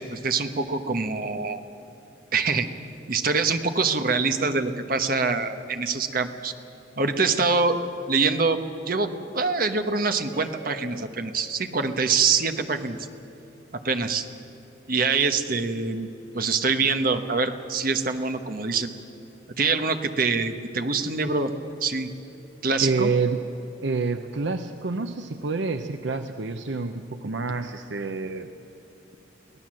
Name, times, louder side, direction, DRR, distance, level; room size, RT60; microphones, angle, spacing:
voice 1, 0.2-1.6 2.3-2.7 3.1-6.5 7.0-7.8 8.1-8.6 8.9-13.0 13.8-14.3 14.9-16.1 16.3-18.9 19.6-21.5 21.8-22.1 22.6-23.1, right 4 dB, 45° right, 7 dB, 1.2 m, -24 dB
sound 1, 10.3-12.7, equal, 30° right, 3.7 m, -49 dB
voice 2, 22.8-23.4 23.8-28.5, right 4 dB, 65° right, 8 dB, 0.7 m, -28 dB
24.0 x 17.0 x 7.6 m, 3.0 s
head